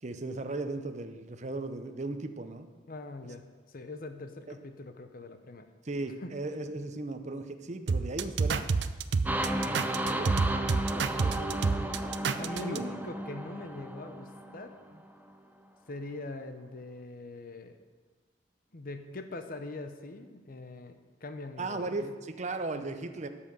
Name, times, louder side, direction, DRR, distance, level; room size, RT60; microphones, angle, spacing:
voice 1, 0.0-2.7 5.8-8.7 9.7-10.4 10.8-11.6 12.3-13.0 21.6-23.3, right 2 dB, 40° right, 8 dB, 0.7 m, -37 dB
voice 2, 2.9-5.7 6.2-6.3 11.6-12.0 12.4-14.7 15.9-17.8 18.7-22.1 22.7-22.9, left 2 dB, 55° left, 7 dB, 0.9 m, -42 dB
sound 1, 7.9-12.8, right 4 dB, 75° right, 0.5 m, -28 dB
sound 2, 9.3-15.0, right 1 dB, 10° right, 0.6 m, -34 dB
12.5 x 5.7 x 6.8 m, 1.4 s
head